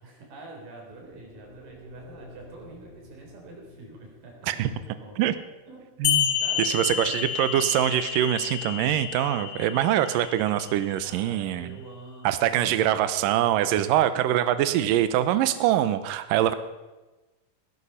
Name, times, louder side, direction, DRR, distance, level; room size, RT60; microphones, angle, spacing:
voice 1, 0.0-5.2 5.7-7.7 11.0-12.9, right 2 dB, 60° right, 0 dB, 5.2 m, -46 dB
sound 1, 0.9-9.1, left 2 dB, 25° right, 6.8 m, -52 dB
sound 2, 6.0-11.1, left 11 dB, 75° left, 2.4 m, -30 dB
voice 2, 6.0-11.8 12.2-16.5, right 12 dB, 75° right, 12 dB, 2.2 m, -24 dB
18.5 x 11.5 x 5.6 m, 1.1 s
omnidirectional pair, 4.6 m